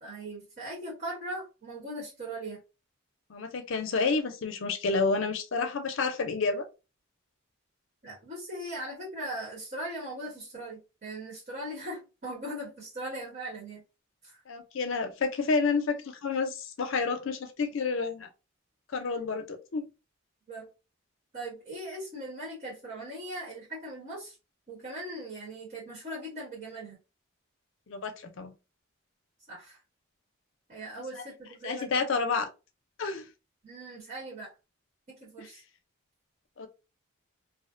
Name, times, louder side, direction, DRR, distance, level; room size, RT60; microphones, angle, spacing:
voice 1, 0.0-2.6 8.0-13.8 14.2-14.4 20.5-20.7 21.3-24.4 24.7-27.0 29.5-29.8 30.7-32.0 33.6-34.5 35.1-35.6, right 1 dB, 45° right, 1.1 m, -39 dB
voice 2, 3.3-6.6 14.5-18.3 18.9-19.8 27.9-28.5 31.6-32.5 33.0-33.3 36.6-36.7, left 4 dB, 65° left, 0.5 m, -29 dB
2.5 x 2.1 x 2.5 m
head